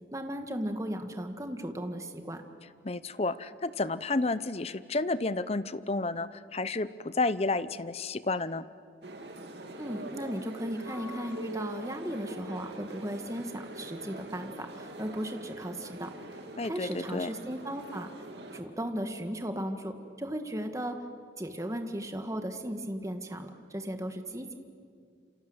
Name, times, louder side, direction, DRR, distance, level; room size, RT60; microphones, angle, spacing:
voice 1, 0.1-2.4 9.8-16.1 16.6-18.1 18.5-21.0 21.4-24.5, equal, 15° right, 6 dB, 1.7 m, -36 dB
voice 2, 2.8-8.7 16.6-17.3, left 3 dB, 35° left, 15 dB, 0.7 m, -31 dB
sound 1, 9.0-18.6, right 1 dB, 65° right, 2.7 m, -43 dB
28.0 x 26.5 x 8.0 m, 2.3 s
head